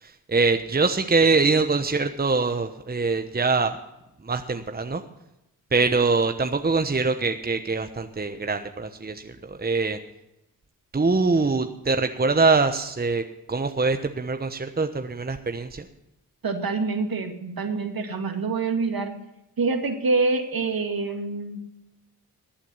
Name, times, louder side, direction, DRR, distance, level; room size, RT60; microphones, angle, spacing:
voice 1, 0.0-3.8 4.2-5.0 5.7-10.0 10.9-15.8, right 3 dB, 25° right, 7 dB, 1.1 m, -23 dB
voice 2, 16.4-19.1 19.6-21.6, right 4 dB, 60° right, 4 dB, 2.3 m, -26 dB
15.0 x 8.9 x 5.6 m, 0.88 s
supercardioid pair, 45°, 40 cm